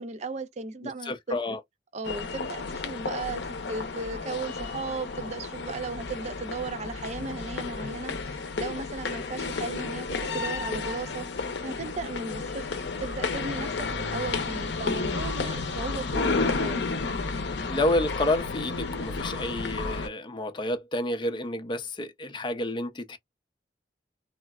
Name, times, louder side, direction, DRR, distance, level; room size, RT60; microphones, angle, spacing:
voice 1, 0.0-1.6 1.9-16.9, right 3 dB, 40° right, 0.5 m, -36 dB
voice 2, 1.1-1.6 16.1-16.4 17.7-23.2, left 1 dB, 30° left, 0.5 m, -29 dB
sound 1, 2.0-20.1, left 4 dB, 75° left, 0.6 m, -32 dB
3.5 x 2.1 x 2.2 m
head